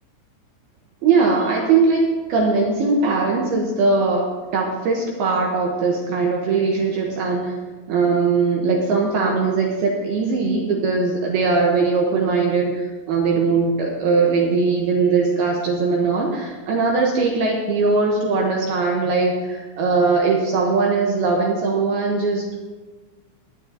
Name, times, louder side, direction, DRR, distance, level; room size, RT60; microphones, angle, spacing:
voice 1, 1.0-7.5 7.9-12.8 13.1-22.4, right 4 dB, 80° right, -1 dB, 2.3 m, -20 dB
20.5 x 10.0 x 2.8 m, 1.3 s
omnidirectional pair, 5.9 m